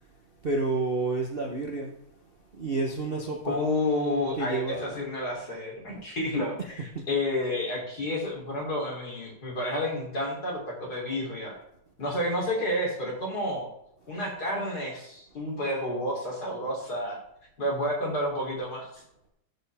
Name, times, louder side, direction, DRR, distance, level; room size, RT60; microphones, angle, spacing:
voice 1, 0.4-1.9 2.5-3.6 4.4-5.0 6.9-7.1, right 3 dB, 40° right, 0 dB, 1.0 m, -30 dB
voice 2, 3.4-11.5 12.0-13.7 14.1-17.2 17.6-18.9, left 1 dB, 50° left, -2 dB, 3.9 m, -30 dB
12.0 x 7.9 x 3.5 m, 0.77 s
omnidirectional pair, 2.1 m